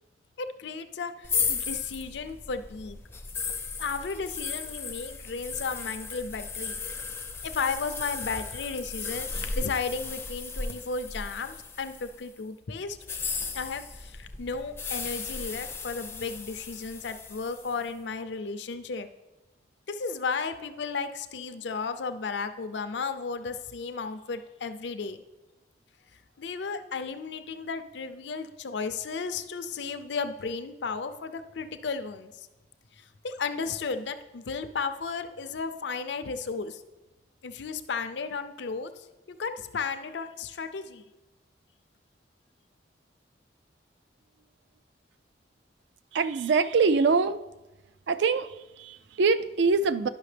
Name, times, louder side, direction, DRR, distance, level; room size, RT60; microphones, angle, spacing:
voice 1, 0.4-3.0 3.8-6.8 7.4-13.0 13.5-19.1 19.9-25.2 26.4-32.5 33.0-36.8 37.4-41.0, left 4 dB, 70° left, 9 dB, 0.5 m, -34 dB
sound 1, 1.2-12.2 12.9-17.8, left 5 dB, 15° left, 0.4 m, -35 dB
voice 2, 46.1-47.4 48.1-50.1, right 4 dB, 70° right, 13 dB, 0.3 m, -24 dB
11.0 x 5.7 x 3.3 m, 1.0 s
head